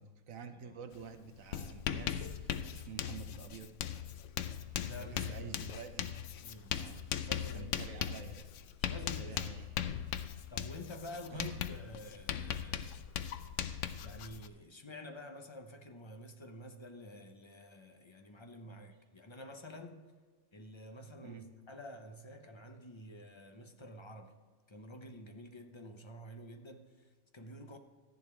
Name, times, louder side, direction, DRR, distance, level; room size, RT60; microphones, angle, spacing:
voice 1, 0.0-3.8 4.9-6.1 6.7-7.3 7.5-8.5 9.2-9.7 11.3-11.7 18.6-18.7 21.2-21.5, right 6 dB, 75° right, 8 dB, 1.3 m, -49 dB
Writing, 0.9-1.1 1.3-14.5, left 9 dB, 70° left, 0.9 m, -39 dB
voice 2, 4.8-5.5 6.0-6.8 7.2-8.0 8.8-9.7 10.5-13.2 14.0-20.1 20.5-24.4 24.7-27.8, left 1 dB, 25° left, 5 dB, 0.7 m, -50 dB
14.0 x 10.5 x 3.3 m, 1.5 s
omnidirectional pair, 1.4 m